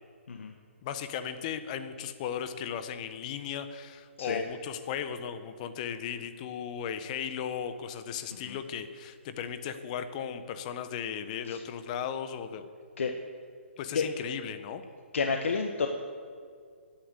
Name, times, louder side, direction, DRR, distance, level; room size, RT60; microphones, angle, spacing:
voice 1, 0.8-12.6 13.8-14.8, left 8 dB, 35° left, 10 dB, 1.2 m, -36 dB
voice 2, 15.1-15.9, left 5 dB, 70° left, 4 dB, 1.5 m, -30 dB
16.5 x 10.5 x 8.3 m, 2.1 s
hypercardioid pair, 150°, 7 cm